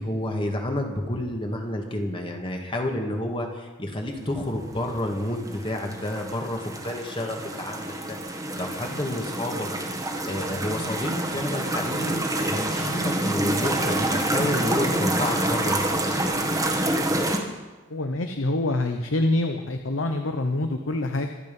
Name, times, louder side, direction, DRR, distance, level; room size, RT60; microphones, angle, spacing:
voice 1, 0.0-9.7 10.3-16.1, left 1 dB, 25° left, 2 dB, 1.9 m, -30 dB
Bubbles in Creek -Preview-, 5.3-17.4, right 1 dB, 15° right, 1.5 m, -27 dB
voice 2, 17.9-21.3, left 2 dB, 80° left, 6 dB, 0.9 m, -26 dB
24.0 x 8.2 x 5.4 m, 1.2 s
head